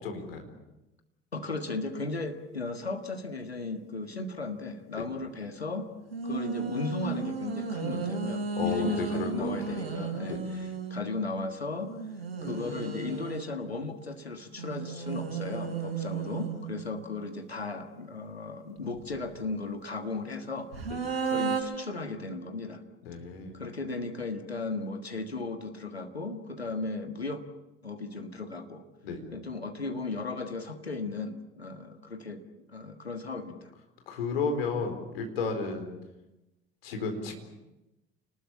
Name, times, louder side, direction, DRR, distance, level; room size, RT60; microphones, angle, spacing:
voice 1, 0.0-0.4 5.0-5.1 8.6-9.5 10.3-10.4 20.9-21.0 23.1-23.6 29.0-29.2 34.1-35.9 36.8-37.3, left 4 dB, 75° left, 5 dB, 4.3 m, -32 dB
voice 2, 1.3-5.9 6.2-12.0 12.4-20.7 21.2-22.8 23.5-27.4 27.8-28.8 29.3-32.4 32.7-33.7, left 3 dB, 90° left, 7 dB, 1.6 m, -36 dB
sound 1, 6.1-11.0 11.9-13.4 14.6-17.1 18.8-19.4 20.7-21.6, right 5 dB, 80° right, 3.7 m, -34 dB
29.5 x 20.0 x 8.5 m, 0.99 s
figure-of-eight pair, 60°, 30 cm